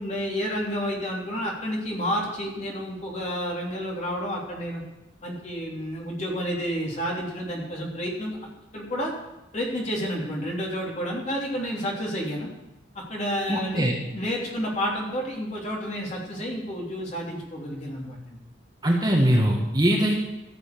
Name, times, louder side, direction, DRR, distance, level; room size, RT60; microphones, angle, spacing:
voice 1, 0.0-4.8 5.2-9.1 9.5-12.5 12.9-18.4, equal, 40° left, -3 dB, 3.6 m, -30 dB
voice 2, 13.5-13.9 18.8-20.2, right 1 dB, 25° right, -1 dB, 1.7 m, -21 dB
15.0 x 7.0 x 6.9 m, 0.95 s
head